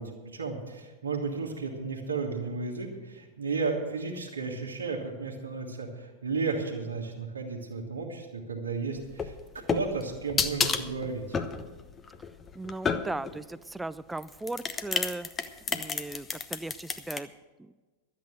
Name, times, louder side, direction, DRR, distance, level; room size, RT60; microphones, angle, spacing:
voice 1, 0.0-11.4, right 4 dB, 70° right, 0 dB, 1.6 m, -33 dB
sound 1, 9.1-13.4 14.2-17.2, left 5 dB, 20° left, 0.8 m, -31 dB
voice 2, 12.5-15.3 15.7-17.3 17.6-17.7, right 2 dB, 5° right, 17 dB, 0.4 m, -37 dB
12.5 x 8.3 x 7.9 m, 1.3 s
figure-of-eight pair, 90°, 0 cm